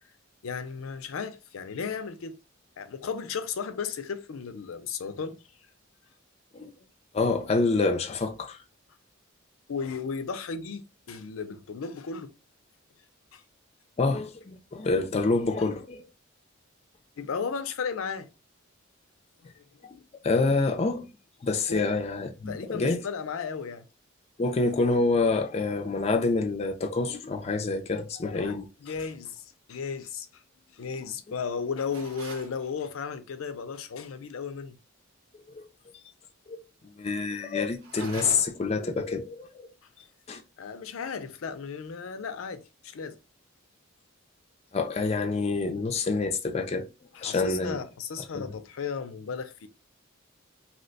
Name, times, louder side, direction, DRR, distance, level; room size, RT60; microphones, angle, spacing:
voice 1, 0.4-2.4 2.8-5.4 9.7-12.3 13.3-13.4 17.2-18.3 19.4-19.6 21.7-21.9 22.5-23.8 28.4-28.6 28.8-30.3 30.7-34.8 40.6-43.2 47.1-49.7, left 5 dB, 85° left, 0.5 m, -35 dB
voice 2, 7.1-8.6 14.0-16.0 19.9-21.1 21.4-23.0 24.4-28.7 35.5-35.6 36.5-36.6 37.0-39.7 40.3-40.4 44.7-46.9 47.2-47.8 48.3-48.5, left 3 dB, 30° left, 0.4 m, -27 dB
sound 1, 31.9-32.5 37.8-38.7, right 3 dB, 75° right, 0.8 m, -42 dB
2.8 x 2.1 x 4.0 m
head